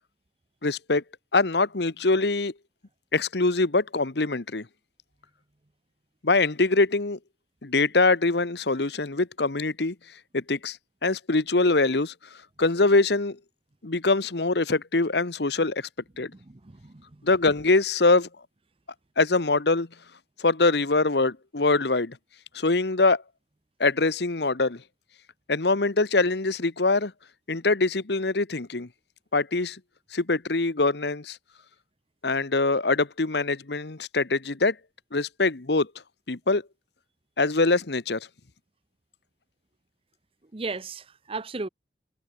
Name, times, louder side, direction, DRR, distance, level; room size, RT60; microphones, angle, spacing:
voice 1, 0.6-1.0 1.3-2.5 3.1-4.7 6.2-7.2 7.6-9.9 10.3-10.8 11.0-12.1 12.6-13.4 13.8-15.9 16.2-16.3 17.2-18.3 19.2-19.9 20.4-22.2 22.5-23.2 23.8-24.8 25.5-27.1 27.5-28.9 29.3-29.8 30.1-31.4 32.2-34.7 35.1-35.9 36.3-36.6 37.4-38.3, left 3 dB, 65° left, 1.2 m, -23 dB
voice 2, 16.5-17.2 40.5-41.7, right 3 dB, 30° right, 0.8 m, -35 dB
head